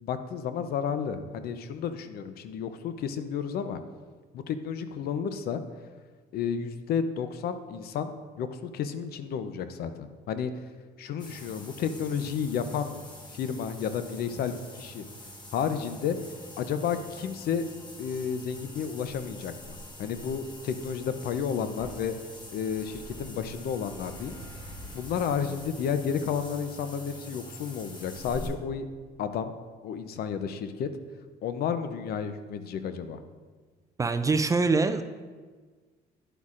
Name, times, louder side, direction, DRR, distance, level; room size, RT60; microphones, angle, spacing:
voice 1, 0.0-3.8 4.3-5.6 6.3-8.1 8.4-10.5 11.0-12.9 13.3-15.0 15.5-16.2 16.6-17.7 18.0-22.1 22.5-24.4 24.9-28.9 29.2-29.5 29.8-30.9 31.4-33.2, left 7 dB, 65° left, 10 dB, 0.6 m, -31 dB
sound 1, 11.2-28.5, left 1 dB, 25° left, 1.1 m, -45 dB
voice 2, 34.0-35.0, right 3 dB, 20° right, 9 dB, 0.3 m, -24 dB
10.0 x 8.1 x 2.5 m, 1.4 s
cardioid pair, 110°, 17 cm